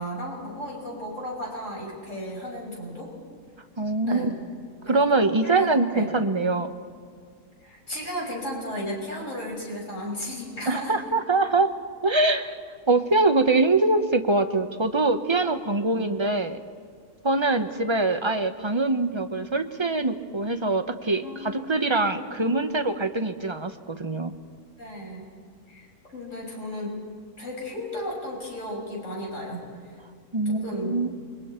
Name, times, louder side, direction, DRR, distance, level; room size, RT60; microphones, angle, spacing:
voice 1, 0.0-3.1 4.0-4.4 4.8-6.1 7.6-10.9 15.5-16.1 21.2-22.8 24.8-25.3 25.7-27.0 27.4-29.9 30.4-31.0, equal, 50° left, -2 dB, 6.7 m, -35 dB
voice 2, 3.8-4.3 4.8-6.7 10.7-11.7 12.0-12.6 12.9-16.6 17.2-24.3 30.3-31.1, right 2 dB, 25° right, 8 dB, 0.8 m, -23 dB
29.5 x 23.0 x 4.5 m, 2.2 s
omnidirectional pair, 1.7 m